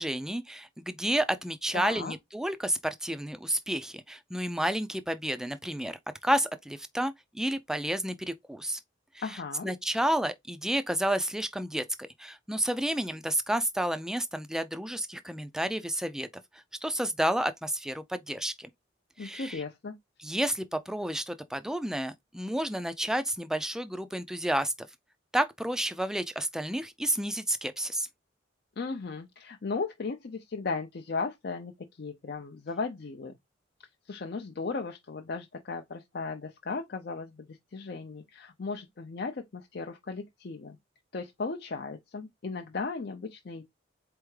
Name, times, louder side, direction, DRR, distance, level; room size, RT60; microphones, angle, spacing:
voice 1, 0.0-8.8 9.3-9.4 9.6-16.3 16.5-18.7 19.2-19.6 20.2-24.9 25.3-28.1, right 1 dB, 5° right, 0.4 m, -31 dB
voice 2, 1.7-2.1 9.2-9.7 19.2-19.9 28.8-31.7 32.0-33.4 34.1-40.8 41.1-43.6, left 4 dB, 55° left, 0.5 m, -36 dB
4.3 x 3.4 x 3.2 m
head